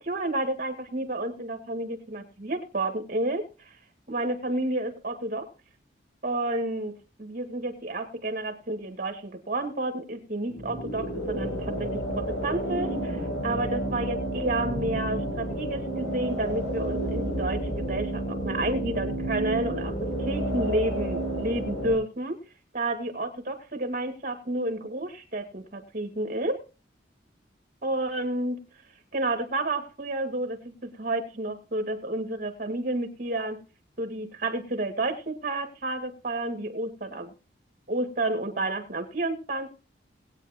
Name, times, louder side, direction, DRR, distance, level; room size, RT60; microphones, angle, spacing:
voice 1, 0.0-3.8 4.1-5.5 6.2-22.4 22.7-26.6 27.8-28.6 29.1-33.6 34.0-37.3 37.9-39.7, right 2 dB, 45° right, 7 dB, 1.9 m, -30 dB
sound 1, 10.5-22.0, right 1 dB, 85° left, 6.6 m, -31 dB
20.0 x 8.9 x 2.9 m, 0.32 s
head